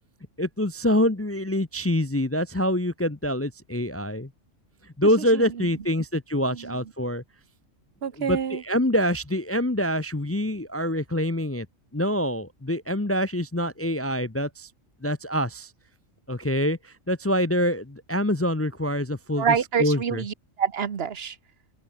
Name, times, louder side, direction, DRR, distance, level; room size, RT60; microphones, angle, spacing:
voice 1, 0.4-4.3 5.0-7.2 8.2-11.7 11.9-14.7 15.0-15.7 16.3-19.5 19.8-20.2, equal, 15° left, 0.7 m, -25 dB
voice 2, 5.0-5.8 6.5-6.9 8.0-8.6 19.4-21.4, right 7 dB, 55° right, 1.3 m, -28 dB
open air
omnidirectional pair, 1.3 m